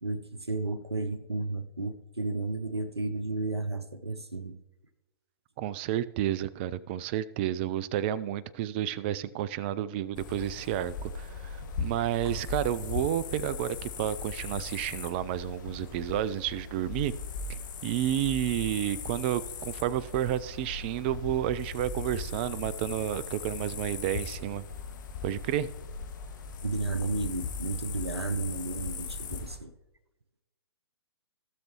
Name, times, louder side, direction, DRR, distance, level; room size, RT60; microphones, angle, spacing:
voice 1, 0.0-4.6 26.6-29.7, right 2 dB, 85° right, 12 dB, 0.7 m, -33 dB
voice 2, 5.6-17.1 17.5-24.6 25.2-25.7, right 12 dB, 25° right, 19 dB, 0.3 m, -31 dB
sound 1, 10.1-29.6, left 5 dB, 50° left, 1.3 m, -38 dB
16.0 x 6.6 x 2.9 m, 1.0 s
figure-of-eight pair, 120°, 13 cm